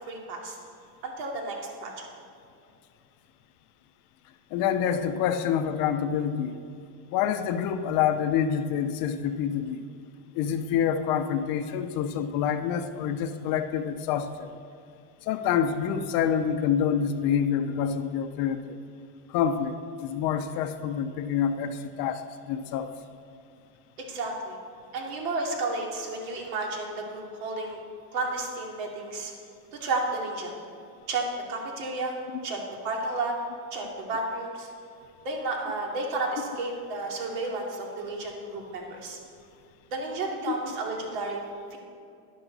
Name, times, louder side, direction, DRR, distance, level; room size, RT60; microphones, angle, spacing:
voice 1, 0.1-0.6 1.0-2.1 24.0-24.6 24.9-27.8 28.1-29.3 29.7-30.5 31.1-32.1 32.4-33.3 33.7-34.7 35.2-39.2 39.9-41.4 41.7-41.8, right 2 dB, 70° right, 0 dB, 2.7 m, -32 dB
voice 2, 4.5-6.6 7.1-9.8 10.3-14.5 15.2-18.8 19.3-22.9, left 8 dB, 45° left, 9 dB, 0.6 m, -27 dB
11.5 x 11.0 x 4.0 m, 2.5 s
cardioid pair, 150°, 49 cm